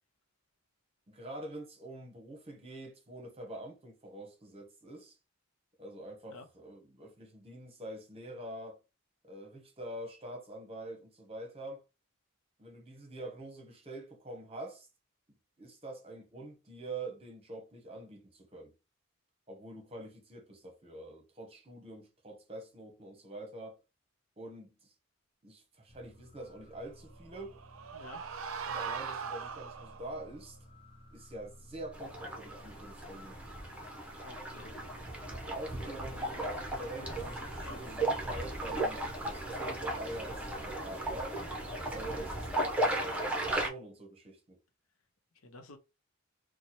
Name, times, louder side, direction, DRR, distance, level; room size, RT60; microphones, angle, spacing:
voice 1, 1.1-5.2 5.8-8.8 9.2-11.8 12.6-14.9 15.6-18.7 19.5-23.8 24.4-24.9 25.4-27.6 28.7-30.6 31.1-33.4 35.3-37.1 37.4-41.4 41.9-44.6, right 1 dB, 30° right, 0.9 m, -45 dB
sound 1, 25.9-40.7, equal, 25° left, 0.7 m, -53 dB
sound 2, 27.2-30.2, right 6 dB, 75° right, 0.5 m, -40 dB
sound 3, 31.9-43.7, right 1 dB, 5° right, 0.8 m, -36 dB
voice 2, 34.2-34.9 35.8-36.3 37.0-37.8 45.3-45.8, left 2 dB, 80° left, 0.8 m, -50 dB
3.0 x 2.2 x 4.2 m
head